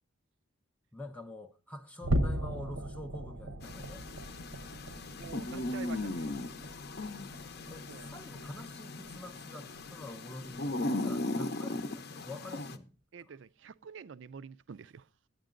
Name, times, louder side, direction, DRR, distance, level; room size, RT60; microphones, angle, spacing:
voice 1, 0.9-4.0 7.7-12.9 13.2-13.4, left 1 dB, 5° left, 0.5 m, -47 dB
sound 1, 2.0-8.7 9.0-9.3 9.7-9.9 10.4-10.6, right 1 dB, 85° right, 0.9 m, -38 dB
sound 2, 3.6-12.8, left 2 dB, 50° left, 0.6 m, -38 dB
voice 2, 5.2-6.3 7.9-8.1 13.1-15.0, right 6 dB, 65° right, 0.4 m, -47 dB
10.5 x 9.2 x 3.7 m
head